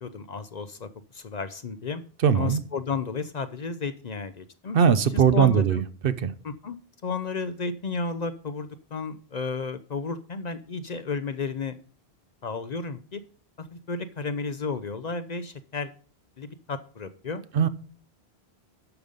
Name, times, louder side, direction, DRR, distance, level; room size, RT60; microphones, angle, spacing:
voice 1, 0.0-2.0 2.3-4.8 5.1-5.8 6.4-11.8 12.4-13.2 13.6-15.9 16.4-17.4, left 4 dB, 50° left, 0.7 m, -33 dB
voice 2, 2.2-2.6 4.7-6.3 17.5-17.7, right 7 dB, 65° right, 0.8 m, -20 dB
11.5 x 5.4 x 5.0 m
omnidirectional pair, 1.1 m